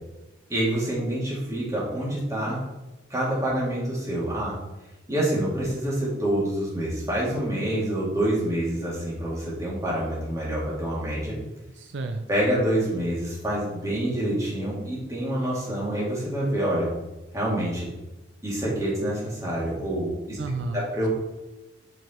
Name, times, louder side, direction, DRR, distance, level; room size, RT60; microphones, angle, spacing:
voice 1, 0.5-2.6 3.1-4.5 5.1-11.3 12.3-16.9 17.3-17.9 18.4-20.4 20.7-21.1, right 1 dB, 15° right, -6 dB, 2.4 m, -27 dB
voice 2, 11.8-12.2 20.4-21.1, right 3 dB, 75° right, 6 dB, 0.5 m, -32 dB
6.2 x 5.1 x 4.4 m, 1.0 s
head